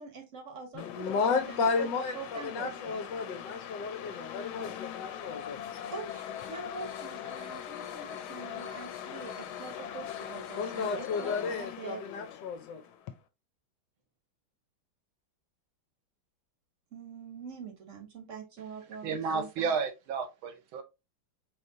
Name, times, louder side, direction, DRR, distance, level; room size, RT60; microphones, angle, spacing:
voice 1, 0.0-1.9 2.1-3.0 5.9-12.1 16.9-19.7, right 5 dB, 50° right, 1.1 m, -45 dB
voice 2, 0.7-5.6 10.5-12.8, left 5 dB, 70° left, 1.2 m, -33 dB
sound 1, 0.8-13.1, left 9 dB, 85° left, 1.5 m, -41 dB
voice 3, 19.0-20.8, right 5 dB, 85° right, 1.7 m, -32 dB
5.0 x 3.1 x 2.6 m
omnidirectional pair, 2.2 m